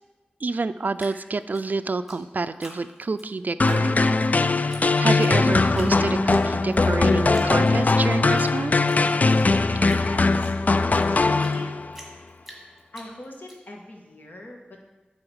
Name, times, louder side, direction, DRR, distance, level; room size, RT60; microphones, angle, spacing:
voice 1, 0.4-4.2 4.5-8.8, right 3 dB, 55° right, 13 dB, 0.3 m, -28 dB
Drip, 1.0-3.3 3.6-4.3 4.7-4.8 5.1-5.9 6.3-6.9 7.3-8.5 8.8-11.6 11.9-13.6, equal, ahead, 2.2 m, -45 dB
sound 1, 3.6-12.0, left 3 dB, 50° left, 0.3 m, -20 dB
voice 2, 9.9-11.7 12.9-14.8, left 2 dB, 65° left, 0 dB, 1.5 m, -40 dB
9.7 x 3.9 x 6.3 m, 1.1 s
wide cardioid pair, 55°, 3 cm